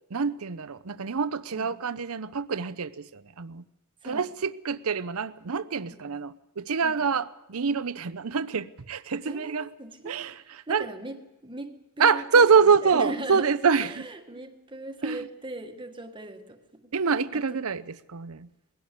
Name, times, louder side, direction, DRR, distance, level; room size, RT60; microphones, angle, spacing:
voice 1, 0.1-3.6 4.0-9.7 10.0-10.9 12.0-14.0 15.0-15.3 16.9-18.5, right 5 dB, 75° right, 0.7 m, -25 dB
voice 2, 6.8-7.2 8.0-8.2 9.3-13.5 13.8-16.9 17.3-17.6, right 2 dB, 20° right, 1.4 m, -40 dB
21.0 x 16.5 x 8.2 m
head